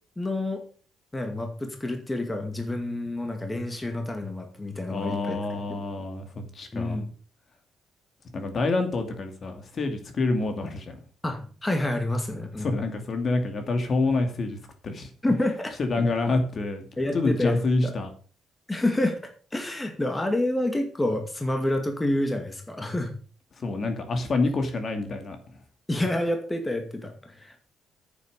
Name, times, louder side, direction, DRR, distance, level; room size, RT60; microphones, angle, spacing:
voice 1, 0.2-0.6 1.1-5.4 5.7-6.1 6.7-7.1 11.2-12.7 15.2-15.7 17.0-17.9 18.7-19.2 19.5-23.1 25.9-27.5, left 1 dB, 15° left, 4 dB, 2.2 m, -28 dB
voice 2, 4.9-7.0 8.3-10.9 12.6-14.6 14.8-15.1 15.8-16.9 17.1-18.1 23.6-25.6, left 3 dB, 45° left, 6 dB, 2.6 m, -27 dB
9.3 x 7.4 x 6.8 m, 0.41 s
cardioid pair, 90°, 0 cm